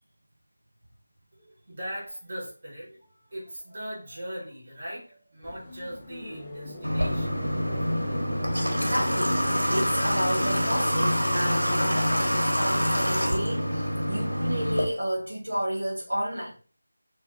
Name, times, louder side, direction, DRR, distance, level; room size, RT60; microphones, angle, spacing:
voice 1, 1.3-7.4, equal, 35° right, 1.0 m, -40 dB
sound 1, 5.4-12.6, left 1 dB, 15° left, 0.4 m, -40 dB
Water / Water tap faucet, 6.8-14.8, equal, 90° left, 0.7 m, -26 dB
voice 2, 8.7-16.5, equal, 60° right, 0.5 m, -31 dB
2.3 x 2.2 x 2.5 m
figure-of-eight pair, 165°, 0 cm